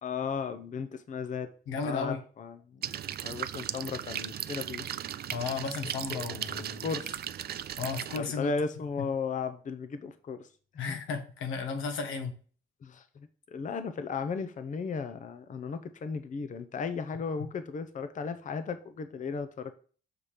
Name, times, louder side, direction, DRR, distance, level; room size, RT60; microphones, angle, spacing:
voice 1, 0.0-1.5 1.8-2.9 3.2-5.0 6.1-6.2 6.8-7.2 8.2-10.5 10.7-11.0 12.8-19.7, left 5 dB, 40° left, 9 dB, 0.7 m, -35 dB
voice 2, 1.7-2.2 5.3-6.9 7.8-8.5 10.8-12.3, left 5 dB, 85° left, 6 dB, 1.3 m, -34 dB
sound 1, 2.8-8.2, right 10 dB, 55° right, 0.4 m, -37 dB
6.7 x 3.3 x 5.7 m, 0.41 s
cardioid pair, 90°, 20 cm